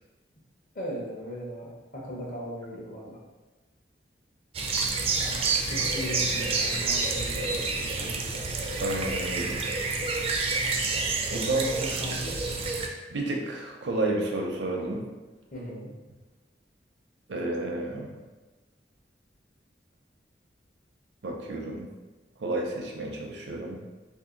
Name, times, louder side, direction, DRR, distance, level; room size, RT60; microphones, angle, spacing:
voice 1, 0.7-3.2 5.2-8.4 11.5-12.6 15.5-15.9, equal, 50° left, -4 dB, 0.9 m, -38 dB
sound 1, 4.5-12.9, right 3 dB, 35° right, 0.3 m, -28 dB
voice 2, 8.8-9.6 11.3-11.7 13.1-15.0 17.3-18.1 21.2-21.9 22.4-23.8, right 2 dB, 80° right, 0 dB, 0.6 m, -30 dB
2.7 x 2.5 x 3.8 m, 1.2 s
head